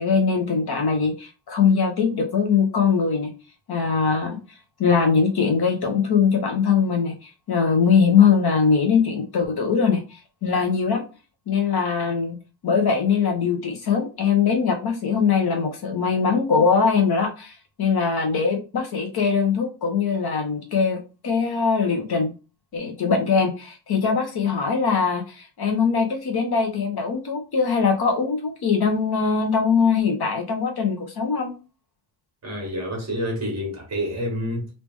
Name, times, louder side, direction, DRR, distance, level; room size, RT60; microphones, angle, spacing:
voice 1, 0.0-3.3 3.7-4.4 4.8-11.0 11.5-12.4 12.6-22.3 22.7-31.5, left 5 dB, 50° left, 1.0 m, -21 dB
voice 2, 32.4-34.7, equal, 30° right, 1.4 m, -28 dB
3.2 x 2.8 x 3.4 m
wide cardioid pair, 175°, 49 cm